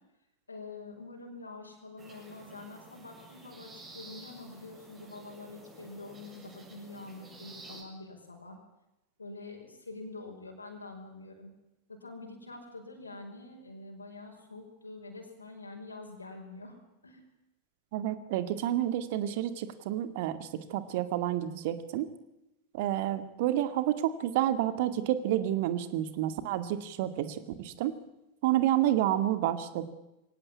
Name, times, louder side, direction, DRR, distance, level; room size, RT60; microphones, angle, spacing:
voice 1, 0.5-8.6 9.2-11.5 11.9-16.8 17.0-17.2, left 3 dB, 80° left, 1 dB, 5.4 m, -46 dB
sound 1, 2.0-7.8, right 2 dB, 20° right, 7.7 m, -51 dB
voice 2, 17.9-22.1 22.7-27.9 28.4-29.8, right 12 dB, 50° right, 11 dB, 2.1 m, -29 dB
23.5 x 18.0 x 9.8 m, 0.92 s
figure-of-eight pair, 90°, 0 cm